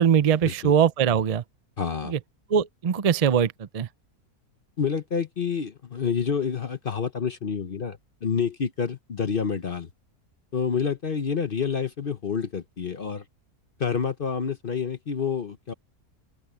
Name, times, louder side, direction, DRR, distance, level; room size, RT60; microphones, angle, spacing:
voice 1, 0.0-1.4 2.0-2.2 2.5-3.9, right 8 dB, 65° right, 0.3 m, -21 dB
voice 2, 1.8-2.1 4.8-9.9 10.5-13.2 13.8-15.7, left 6 dB, 45° left, 0.8 m, -28 dB
open air
omnidirectional pair, 1.6 m